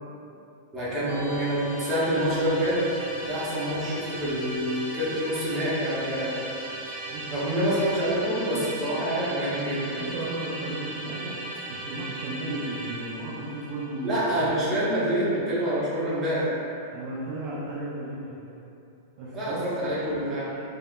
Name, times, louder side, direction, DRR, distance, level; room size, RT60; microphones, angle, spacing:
voice 1, 0.7-2.8 3.2-6.5 7.3-10.0 14.0-16.5 19.3-20.6, equal, 25° right, -10 dB, 1.1 m, -27 dB
Musical instrument, 1.1-16.2, right 2 dB, 75° right, 1.3 m, -38 dB
voice 2, 7.1-7.4 9.9-11.3 11.7-14.8 16.9-18.4 19.2-19.6, right 2 dB, 50° right, -9 dB, 0.5 m, -35 dB
3.4 x 2.3 x 2.2 m, 2.7 s
figure-of-eight pair, 95°, 0 cm